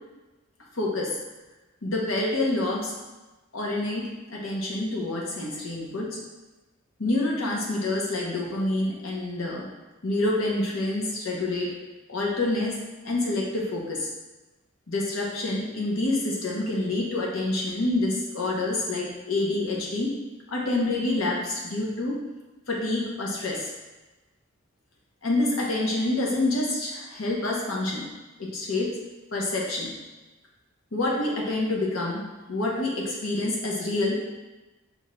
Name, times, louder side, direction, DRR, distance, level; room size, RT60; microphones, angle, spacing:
voice 1, 0.7-1.2 1.8-2.9 3.5-6.2 7.0-9.7 10.0-11.7 12.1-14.1 14.9-20.2 20.5-22.2 22.7-23.7 25.2-28.1 28.4-29.0 29.3-29.9 30.9-32.2 32.5-34.2, left 2 dB, 85° left, -3 dB, 0.9 m, -27 dB
5.3 x 2.4 x 3.1 m, 1.2 s
head